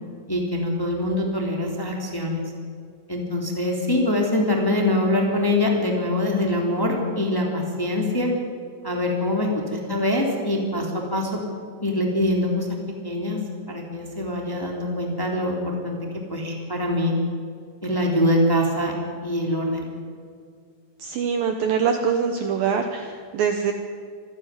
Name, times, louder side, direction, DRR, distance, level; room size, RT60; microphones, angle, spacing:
voice 1, 0.3-2.4 3.1-8.3 8.8-11.4 11.8-12.7 13.0-13.4 13.7-16.0 16.3-17.1 17.8-18.9 19.2-19.9, left 1 dB, 5° left, 0 dB, 2.5 m, -24 dB
voice 2, 21.0-23.7, right 6 dB, 70° right, 5 dB, 2.4 m, -24 dB
26.0 x 12.5 x 9.7 m, 2.2 s
omnidirectional pair, 5.1 m